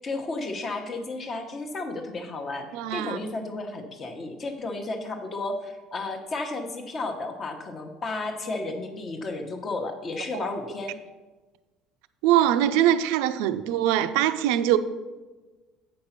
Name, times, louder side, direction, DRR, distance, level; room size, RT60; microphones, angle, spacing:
voice 1, 0.0-11.0, left 2 dB, 25° left, 0.9 m, -33 dB
voice 2, 2.7-3.2 12.2-14.8, right 12 dB, 85° right, 0.5 m, -22 dB
8.8 x 5.3 x 5.8 m
cardioid pair, 170°, 0 cm